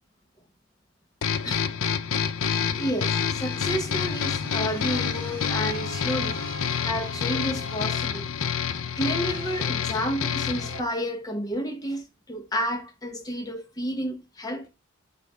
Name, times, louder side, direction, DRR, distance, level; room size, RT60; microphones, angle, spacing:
sound 1, 1.2-10.8, left 7 dB, 80° left, 0.5 m, -28 dB
sound 2, 2.5-10.8, right 1 dB, 25° right, 4.1 m, -43 dB
voice 1, 2.8-6.4 6.8-8.3 9.0-14.7, equal, 20° left, 1.0 m, -30 dB
8.0 x 2.7 x 5.4 m
head